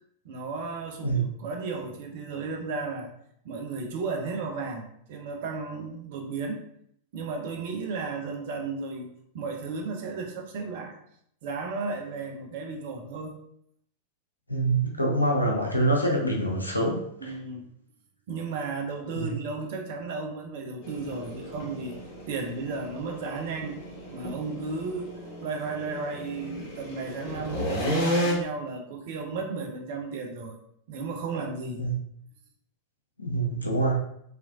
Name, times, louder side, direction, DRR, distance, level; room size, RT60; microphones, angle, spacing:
voice 1, 0.2-3.1 3.4-6.6 7.1-11.0 11.4-13.4 17.2-17.7 18.3-22.0 22.3-23.8 24.1-30.6 30.9-31.8, right 4 dB, 50° right, 3 dB, 0.5 m, -34 dB
voice 2, 14.5-17.3 19.1-19.3 31.8-31.9 33.2-34.0, right 2 dB, 85° left, -1 dB, 0.6 m, -25 dB
sound 1, 20.8-28.3, equal, 40° left, 0.9 m, -33 dB
2.9 x 2.4 x 2.6 m, 0.70 s
figure-of-eight pair, 90°, 0 cm